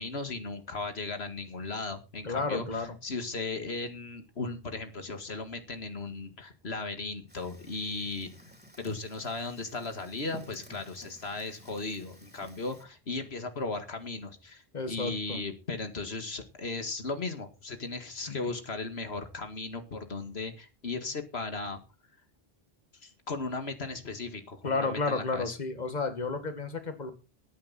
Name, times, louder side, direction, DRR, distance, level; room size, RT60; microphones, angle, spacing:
voice 1, 0.0-8.3 8.8-14.6 14.9-21.8 23.0-25.6, left 3 dB, 90° left, 8 dB, 2.2 m, -36 dB
voice 2, 2.2-2.9 14.7-15.4 18.3-18.4 24.6-27.1, left 3 dB, 45° left, 8 dB, 2.0 m, -32 dB
Fire, 7.3-12.8, equal, 10° right, 3.4 m, -53 dB
17.5 x 9.5 x 4.2 m, 0.30 s
omnidirectional pair, 1.0 m